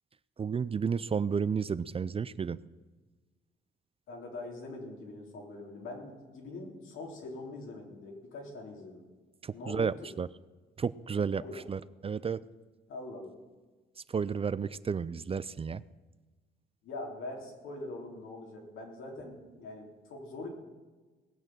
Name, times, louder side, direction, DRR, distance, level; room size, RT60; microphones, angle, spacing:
voice 1, 0.4-2.6 9.4-10.3 10.8-12.4 14.1-15.8, right 6 dB, 30° right, 18 dB, 0.4 m, -32 dB
voice 2, 4.1-9.0 9.5-10.1 11.4-11.6 12.9-13.3 16.8-20.5, left 2 dB, 85° left, 0 dB, 3.6 m, -43 dB
19.0 x 6.7 x 7.7 m, 1.3 s
cardioid pair, 90°, 20 cm